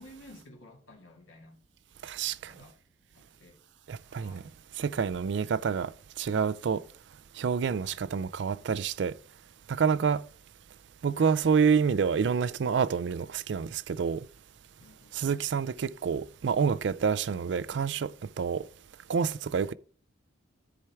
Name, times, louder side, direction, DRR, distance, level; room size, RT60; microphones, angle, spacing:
voice 1, 0.0-1.6 2.5-2.8 3.1-3.6 4.0-4.9 7.8-8.0 10.0-10.1 14.8-15.2, left 1 dB, 85° left, 2.1 m, -54 dB
voice 2, 2.0-2.5 3.9-4.4 4.8-5.9 6.2-6.8 7.4-9.1 9.7-10.2 11.0-14.2 15.1-18.1 18.4-18.6 19.1-19.7, right 6 dB, 60° right, 0.4 m, -28 dB
13.5 x 4.5 x 3.5 m
head